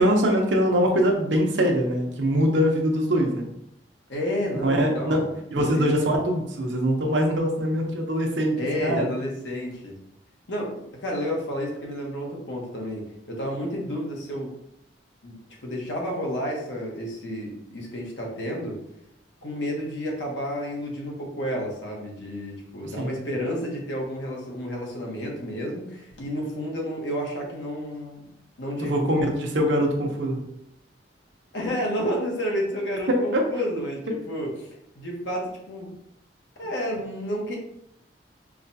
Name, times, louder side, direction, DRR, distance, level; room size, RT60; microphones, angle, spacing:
voice 1, 0.0-3.5 4.6-5.2 5.5-9.1 22.8-23.1 28.8-30.4 33.1-33.4, equal, 85° right, 2 dB, 0.7 m, -23 dB
voice 2, 4.1-5.3 5.6-5.9 8.6-10.0 10.5-14.5 15.2-18.8 19.4-28.3 28.6-29.0 31.5-34.7 34.9-35.9 36.6-37.6, equal, 90° left, -1 dB, 1.1 m, -31 dB
4.7 x 2.3 x 2.7 m, 0.78 s
head